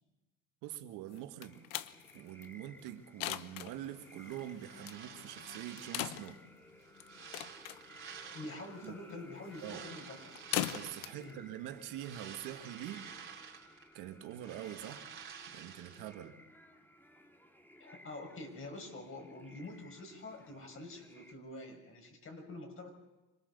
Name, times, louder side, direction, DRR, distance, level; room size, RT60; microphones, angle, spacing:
voice 1, 0.6-1.6 2.1-6.4 8.8-9.0 9.6-9.9 10.7-13.1 13.9-15.1 15.5-16.4, right 12 dB, 75° right, 1.9 m, -45 dB
sound 1, 1.1-12.6, left 14 dB, 80° left, 1.0 m, -43 dB
sound 2, 1.4-21.3, equal, 5° left, 2.4 m, -59 dB
sound 3, 4.3-6.4 6.8-8.9 9.5-11.3 11.7-13.9 14.2-16.1, right 7 dB, 40° right, 3.7 m, -50 dB
voice 2, 8.3-10.3 11.1-11.4 17.8-22.9, left 2 dB, 40° left, 6.0 m, -46 dB
26.0 x 20.0 x 6.8 m
supercardioid pair, 90°, 32 cm